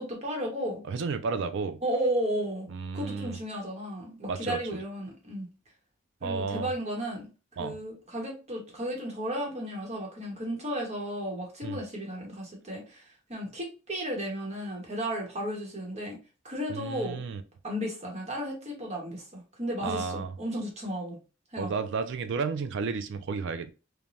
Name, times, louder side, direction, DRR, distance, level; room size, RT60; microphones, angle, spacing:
voice 1, 0.0-0.8 1.8-2.7 2.9-5.5 6.2-7.3 7.6-13.0 13.3-16.2 16.4-17.2 17.6-21.2 21.5-21.7, equal, 35° right, 1.0 m, -34 dB
voice 2, 0.9-1.8 2.7-3.4 4.3-4.6 6.2-6.7 7.6-7.8 11.6-11.8 16.7-17.4 19.8-20.3 21.6-23.7, right 5 dB, 60° right, 0.4 m, -32 dB
3.1 x 2.2 x 2.5 m
head